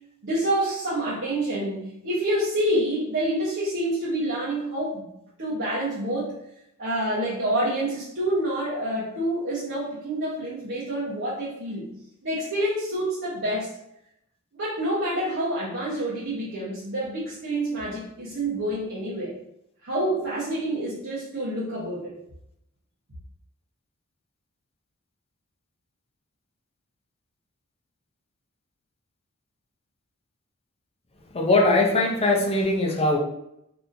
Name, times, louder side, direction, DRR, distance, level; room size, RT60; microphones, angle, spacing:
voice 1, 0.2-5.1 5.4-6.4 6.8-11.9 12.2-13.7 14.5-19.4 19.8-22.1, right 1 dB, 55° right, -8 dB, 0.9 m, -27 dB
voice 2, 31.3-33.2, left 2 dB, 25° left, -1 dB, 0.6 m, -21 dB
3.8 x 2.8 x 2.6 m, 0.78 s
head